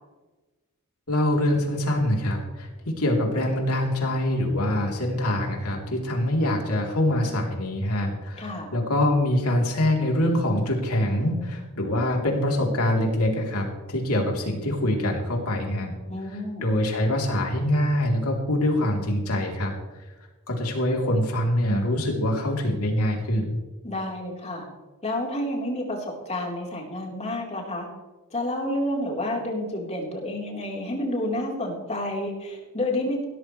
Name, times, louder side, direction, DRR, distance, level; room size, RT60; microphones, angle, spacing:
voice 1, 1.1-15.9 16.3-19.7 20.5-23.6, left 1 dB, 90° left, 0 dB, 3.5 m, -24 dB
voice 2, 8.4-8.7 16.1-16.7 23.8-24.7 25.0-27.9 28.3-33.2, left 1 dB, 30° left, -1 dB, 4.0 m, -29 dB
17.0 x 13.5 x 3.3 m, 1.2 s
head